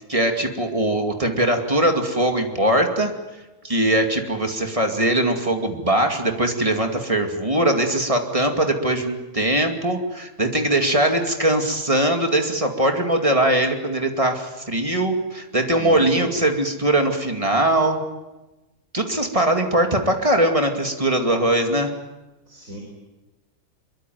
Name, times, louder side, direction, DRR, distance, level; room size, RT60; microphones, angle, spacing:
voice 1, 0.1-3.1 3.6-18.0 18.9-21.9, right 1 dB, 20° right, 4 dB, 2.4 m, -21 dB
voice 2, 15.8-16.3 22.5-22.8, equal, 65° right, 1 dB, 5.3 m, -34 dB
24.5 x 22.5 x 9.4 m, 1.1 s
omnidirectional pair, 1.5 m